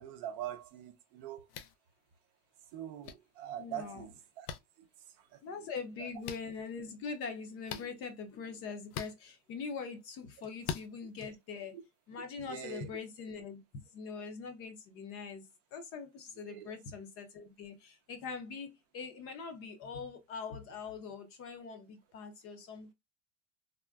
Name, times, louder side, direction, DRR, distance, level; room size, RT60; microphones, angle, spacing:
voice 1, 0.0-1.5 2.7-4.5 5.3-5.7 6.0-6.1 11.7-11.8 12.4-13.0 16.5-16.7, right 11 dB, 45° right, 0.5 m, -43 dB
sound 1, 1.5-1.7 3.0-3.1 4.5-4.6 6.2-6.4 7.7-7.9 8.9-9.1 10.6-10.9, left 8 dB, 85° left, 0.6 m, -39 dB
voice 2, 3.6-4.1 5.4-11.8 12.1-13.6 13.9-22.9, left 5 dB, 30° left, 0.5 m, -43 dB
3.5 x 2.1 x 2.2 m
supercardioid pair, 140°, 44 cm